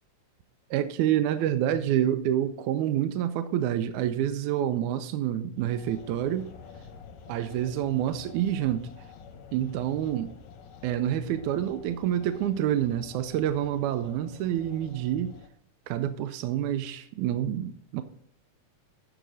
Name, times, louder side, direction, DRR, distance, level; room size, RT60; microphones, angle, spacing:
voice 1, 0.7-6.5 7.3-8.9 9.5-10.3 10.8-15.4 15.9-18.0, right 11 dB, 80° right, 1.9 m, -27 dB
sound 1, 5.6-15.5, left 6 dB, 75° left, 2.2 m, -48 dB
14.0 x 5.0 x 4.0 m
omnidirectional pair, 3.5 m